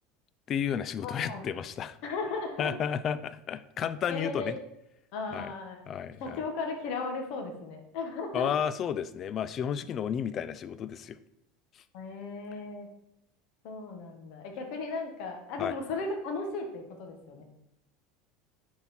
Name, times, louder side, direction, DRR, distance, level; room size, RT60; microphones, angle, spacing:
voice 1, 0.5-2.0 2.6-4.6 5.3-5.5 5.9-6.4 8.3-11.2 15.6-15.7, left 8 dB, 35° left, 15 dB, 0.4 m, -32 dB
voice 2, 1.0-1.4 2.0-2.7 4.1-4.6 5.1-5.9 6.2-8.5 11.9-12.9 13.6-17.4, left 3 dB, 60° left, 3 dB, 1.4 m, -36 dB
10.0 x 4.1 x 4.3 m, 0.79 s
supercardioid pair, 145°, 0 cm